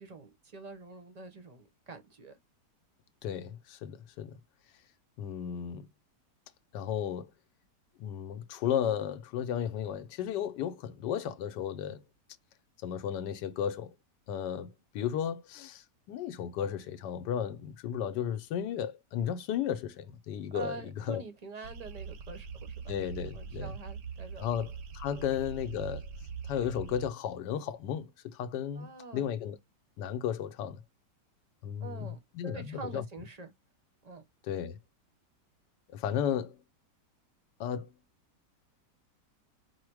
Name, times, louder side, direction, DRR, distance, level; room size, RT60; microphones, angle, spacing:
voice 1, 0.0-2.4 20.5-22.9 23.3-24.5 25.1-25.2 28.8-29.3 31.8-33.5 34.0-34.2, right 3 dB, 35° right, 0.7 m, -45 dB
voice 2, 3.2-4.4 5.2-5.9 6.7-7.3 8.0-12.0 12.8-13.9 14.3-21.2 22.9-23.7 24.4-26.1 26.4-29.6 30.0-30.8 31.6-32.1 32.3-33.0 34.5-34.8 35.9-36.6 37.6-37.9, left 9 dB, 90° left, 1.3 m, -34 dB
sound 1, 21.6-27.1, right 6 dB, 70° right, 1.0 m, -42 dB
4.8 x 2.0 x 4.6 m
omnidirectional pair, 1.8 m